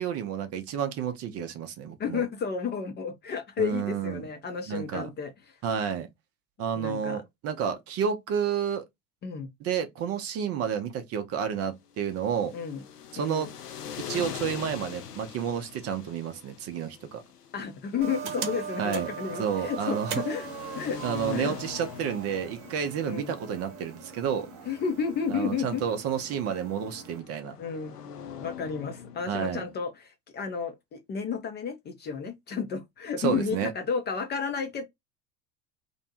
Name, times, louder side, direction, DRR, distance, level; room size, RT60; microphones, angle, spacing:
voice 1, 0.0-2.2 3.6-4.2 4.7-5.1 5.6-6.1 6.6-8.8 9.6-12.5 13.1-13.5 14.1-17.2 18.8-19.1 19.4-20.2 21.0-24.5 25.3-27.6 29.3-29.6 33.2-33.7, right 8 dB, 35° right, 0.5 m, -30 dB
voice 2, 2.0-5.6 6.8-7.2 9.2-9.5 12.5-12.8 13.2-13.5 17.5-20.5 20.8-21.0 21.3-21.6 23.1-23.4 24.7-25.8 27.6-27.9 28.4-34.8, left 6 dB, 25° left, 0.5 m, -32 dB
sound 1, 11.9-29.8, left 8 dB, 85° left, 0.6 m, -43 dB
sound 2, 18.0-27.2, right 6 dB, 55° right, 0.8 m, -40 dB
2.6 x 2.1 x 2.7 m
figure-of-eight pair, 75°, 46 cm